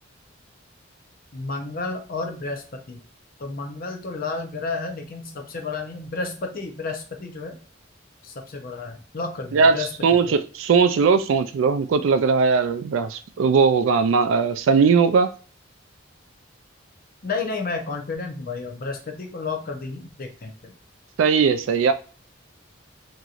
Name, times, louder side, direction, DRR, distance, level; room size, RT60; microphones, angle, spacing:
voice 1, 1.3-3.0 3.4-7.6 8.2-10.4 17.2-20.7, left 3 dB, 45° left, 0.6 m, -31 dB
voice 2, 10.0-15.3 21.2-21.9, right 5 dB, 75° right, 0.3 m, -19 dB
2.9 x 2.7 x 2.4 m
head